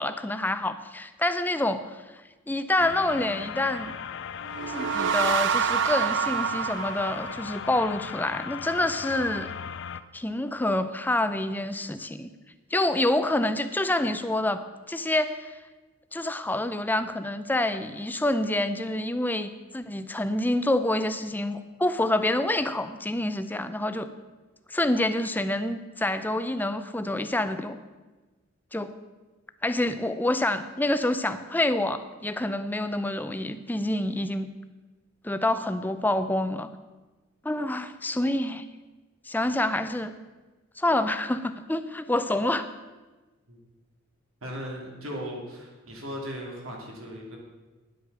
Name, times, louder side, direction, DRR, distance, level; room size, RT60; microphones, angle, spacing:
voice 1, 0.0-2.0 2.5-3.9 4.7-9.5 10.1-12.3 12.7-15.5 16.1-24.1 24.7-27.8 28.7-28.9 29.6-34.5 35.2-36.7 37.4-38.6 39.3-40.1 40.8-42.7, left 1 dB, 10° left, 10 dB, 0.5 m, -27 dB
sound 1, 2.8-10.0, left 8 dB, 60° left, 0.4 m, -38 dB
sound 2, 4.4-8.0, right 7 dB, 60° right, 0.4 m, -27 dB
voice 2, 44.4-47.4, equal, 80° right, -1 dB, 2.8 m, -37 dB
10.5 x 8.0 x 6.8 m, 1.2 s
head